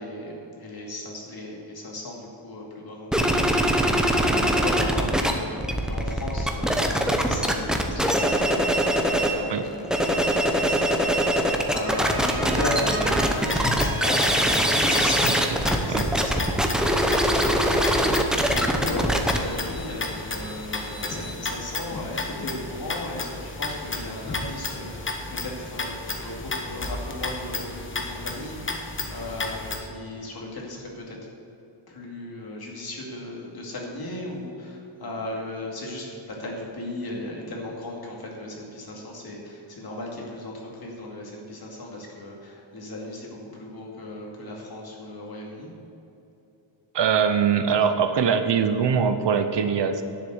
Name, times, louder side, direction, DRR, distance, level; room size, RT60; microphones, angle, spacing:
voice 1, 0.0-11.3 11.7-15.3 15.6-31.2 31.9-45.7, left 1 dB, 50° left, -2 dB, 2.5 m, -36 dB
sound 1, 3.1-5.3 5.6-9.4 9.8-21.3, equal, ahead, 0.7 m, -23 dB
sound 2, 11.8-15.2, right 5 dB, 85° right, 1.4 m, -35 dB
sound 3, 13.2-29.8, left 3 dB, 25° left, 0.9 m, -33 dB
voice 2, 46.9-50.0, right 7 dB, 60° right, 9 dB, 0.8 m, -22 dB
10.5 x 6.7 x 7.9 m, 2.9 s
wide cardioid pair, 155°, 49 cm